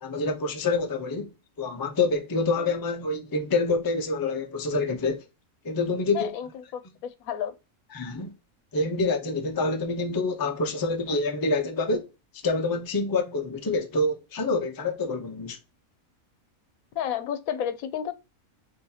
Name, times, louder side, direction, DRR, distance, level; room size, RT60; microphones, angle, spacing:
voice 1, 0.0-1.3 1.6-5.2 5.6-6.3 7.9-8.3 8.7-12.1 12.4-15.6, left 3 dB, 30° left, 0.4 m, -27 dB
voice 2, 6.1-7.5 16.9-18.1, left 9 dB, 85° left, 1.0 m, -31 dB
3.9 x 3.8 x 2.7 m
omnidirectional pair, 1.5 m